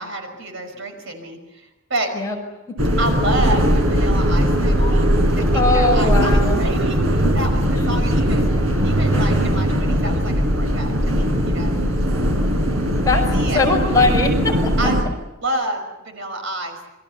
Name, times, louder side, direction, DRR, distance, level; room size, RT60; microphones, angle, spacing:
voice 1, 0.0-2.1 3.0-5.1 5.4-8.5 8.8-11.8 13.3-13.7 14.8-15.0 15.4-16.8, right 1 dB, 65° right, 5 dB, 5.6 m, -29 dB
sound 1, 2.8-15.0, equal, 80° right, 4.9 m, -19 dB
voice 2, 5.5-6.6 7.7-7.9 13.0-13.2 13.5-14.7, left 3 dB, 15° left, 0 dB, 5.9 m, -20 dB
28.0 x 23.0 x 7.0 m, 0.99 s
head